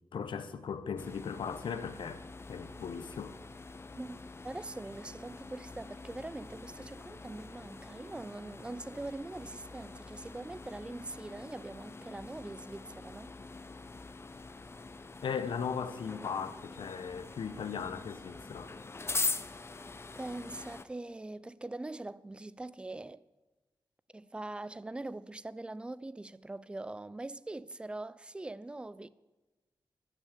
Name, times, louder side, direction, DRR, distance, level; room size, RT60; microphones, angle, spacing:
voice 1, 0.1-2.2 2.5-3.4 15.2-18.7, left 6 dB, 85° left, 0.9 m, -38 dB
sound 1, 1.0-20.9, left 3 dB, 30° left, 0.6 m, -43 dB
voice 2, 4.4-13.3 20.1-23.2 24.1-29.1, right 2 dB, 10° right, 0.4 m, -42 dB
13.0 x 6.2 x 9.1 m
wide cardioid pair, 100°, 8 cm